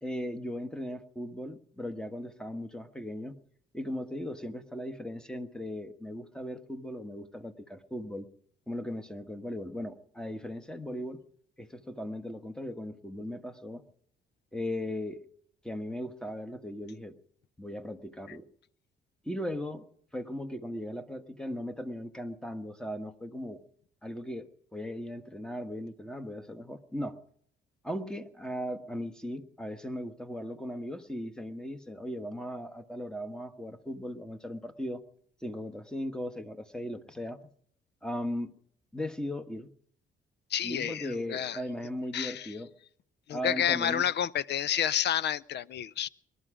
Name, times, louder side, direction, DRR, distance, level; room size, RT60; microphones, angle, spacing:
voice 1, 0.0-3.3 3.7-8.3 8.7-11.2 11.6-13.8 14.5-15.3 15.6-17.1 17.6-18.4 19.2-19.8 20.1-23.6 24.0-27.2 27.8-35.0 35.4-37.4 38.0-38.5 38.9-39.7 40.6-42.7 43.3-44.0, left 1 dB, 5° left, 1.3 m, -37 dB
voice 2, 40.5-41.6 42.1-42.5 43.3-46.1, left 10 dB, 60° left, 0.5 m, -30 dB
21.0 x 12.5 x 5.0 m
cardioid pair, 90°, 20 cm